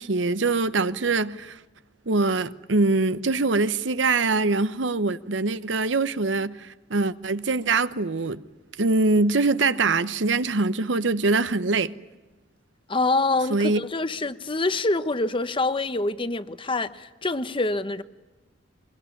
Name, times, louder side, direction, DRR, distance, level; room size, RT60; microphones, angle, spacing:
voice 1, 0.0-1.6 2.1-8.4 8.8-11.9 13.5-13.8, right 3 dB, 75° right, 0.9 m, -23 dB
voice 2, 12.9-18.0, left 2 dB, 30° left, 0.9 m, -26 dB
24.0 x 22.5 x 9.8 m
head